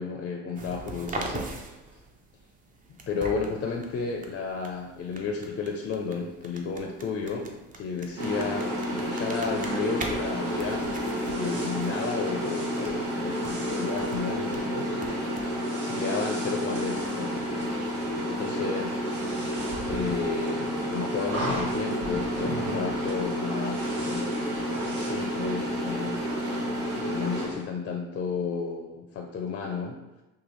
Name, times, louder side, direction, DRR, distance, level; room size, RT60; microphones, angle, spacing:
voice 1, 0.0-1.6 3.1-10.9 11.2-14.9 15.8-17.4 18.4-19.0 19.9-26.3 27.1-29.9, left 5 dB, 35° left, 2 dB, 0.4 m, -32 dB
sound 1, 0.5-15.6, right 3 dB, 25° right, 0.4 m, -42 dB
sound 2, 8.2-27.7, right 1 dB, 60° right, 1.0 m, -40 dB
sound 3, 8.2-27.5, equal, 85° right, 1.0 m, -30 dB
2.8 x 2.3 x 3.0 m, 1.0 s
hypercardioid pair, 75°, 33 cm